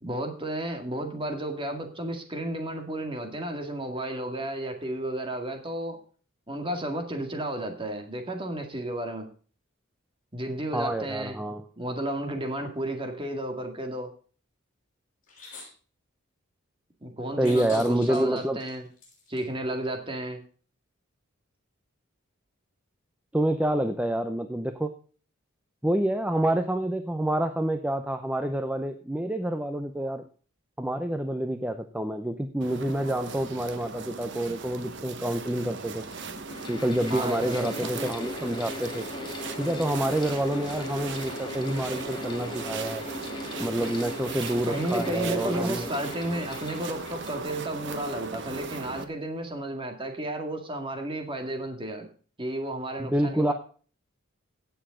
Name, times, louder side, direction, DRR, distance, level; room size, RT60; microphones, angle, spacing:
voice 1, 0.0-6.0 6.5-9.3 10.3-11.4 11.8-14.1 17.0-18.9 19.3-20.4 37.1-37.9 44.7-52.1 52.4-53.5, right 1 dB, 25° right, 4 dB, 2.0 m, -32 dB
voice 2, 10.7-11.6 17.4-18.6 23.3-24.9 25.8-30.3 30.8-36.0 36.7-39.1 39.6-43.0 43.6-45.9 53.0-53.5, right 1 dB, 5° right, 7 dB, 0.6 m, -28 dB
sound 1, 15.3-15.7 17.4-19.4, left 3 dB, 40° left, 7.4 m, -45 dB
sound 2, 32.6-49.0, right 4 dB, 55° right, 1.1 m, -38 dB
Mechanical fan, 34.8-34.9 35.7-48.4, left 2 dB, 20° left, 2.0 m, -39 dB
17.0 x 6.9 x 3.7 m, 0.40 s
head